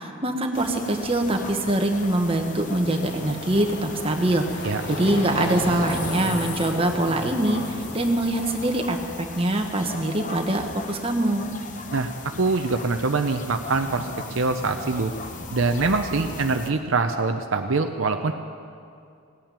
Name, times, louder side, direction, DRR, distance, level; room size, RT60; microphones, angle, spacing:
voice 1, 0.0-4.4 4.9-11.4, right 1 dB, 25° right, 3 dB, 1.2 m, -24 dB
sound 1, 0.5-16.7, left 3 dB, 35° left, 1.0 m, -38 dB
sound 2, 2.7-8.7, left 1 dB, 55° left, 3.1 m, -34 dB
voice 2, 12.4-15.1 15.5-18.3, right 3 dB, 60° right, 6 dB, 0.7 m, -24 dB
18.0 x 8.9 x 8.9 m, 2.4 s
head